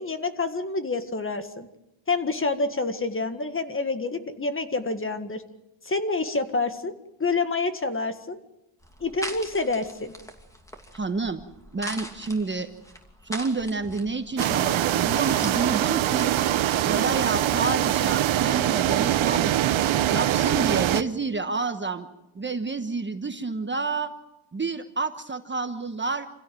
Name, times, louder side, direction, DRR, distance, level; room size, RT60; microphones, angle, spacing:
voice 1, 0.0-1.7 2.1-5.4 5.8-8.4 9.0-10.1, left 3 dB, 25° left, 9 dB, 1.7 m, -28 dB
sound 1, 8.8-15.5, equal, 5° left, 2.7 m, -41 dB
voice 2, 10.9-11.4 11.7-12.7 13.2-16.3 16.7-19.6 20.1-22.1 22.3-24.1 24.5-26.3, right 3 dB, 25° right, 8 dB, 1.2 m, -29 dB
sound 2, 14.4-21.0, right 12 dB, 70° right, 1.0 m, -23 dB
27.0 x 16.5 x 7.8 m, 0.93 s
cardioid pair, 110°, 49 cm